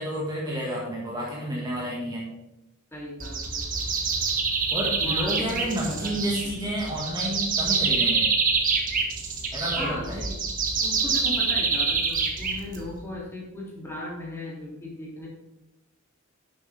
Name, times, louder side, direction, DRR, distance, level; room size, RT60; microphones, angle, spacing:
voice 1, 0.0-2.2 4.7-8.2 9.5-10.2, equal, 20° right, -4 dB, 1.8 m, -30 dB
voice 2, 2.9-3.7 5.0-6.6 9.8-10.5 10.8-15.3, left 1 dB, 10° left, -5 dB, 2.9 m, -37 dB
sound 1, 3.2-13.0, right 4 dB, 40° right, 1.4 m, -26 dB
11.0 x 7.8 x 3.5 m, 0.96 s
head